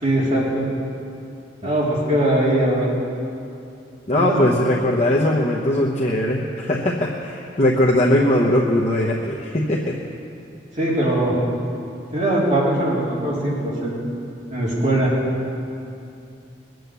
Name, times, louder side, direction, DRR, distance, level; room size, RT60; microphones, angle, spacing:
voice 1, 0.0-0.7 1.6-2.9 4.1-4.4 10.8-11.3 12.1-14.0 14.5-15.1, right 1 dB, 40° right, -7 dB, 3.4 m, -21 dB
voice 2, 4.1-10.0, left 1 dB, 35° left, -3 dB, 1.0 m, -20 dB
21.5 x 7.9 x 6.9 m, 2.7 s
head